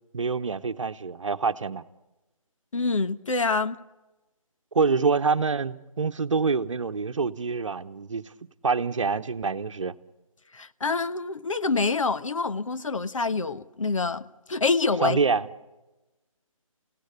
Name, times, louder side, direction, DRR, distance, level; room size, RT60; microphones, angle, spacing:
voice 1, 0.1-1.8 4.7-8.2 8.6-9.9 15.0-15.5, right 4 dB, 60° right, 1.0 m, -26 dB
voice 2, 2.7-3.8 10.5-15.2, left 4 dB, 65° left, 1.1 m, -26 dB
30.0 x 17.0 x 8.4 m
figure-of-eight pair, 160°, 18 cm